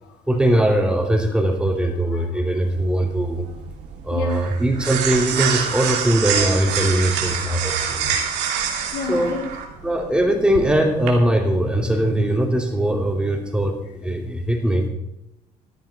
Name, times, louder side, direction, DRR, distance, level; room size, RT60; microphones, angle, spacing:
voice 1, 0.3-3.4 4.0-8.1 9.1-9.3 9.8-14.9, right 1 dB, 5° right, 2.8 m, -21 dB
voice 2, 2.1-2.4 4.1-4.6 5.0-5.1 7.1-7.3 7.6-7.8 8.2-9.6, left 7 dB, 80° left, 2.1 m, -33 dB
sound 1, 2.6-11.1, right 7 dB, 90° right, 2.6 m, -26 dB
15.0 x 10.5 x 4.2 m
cardioid pair, 110°, 17 cm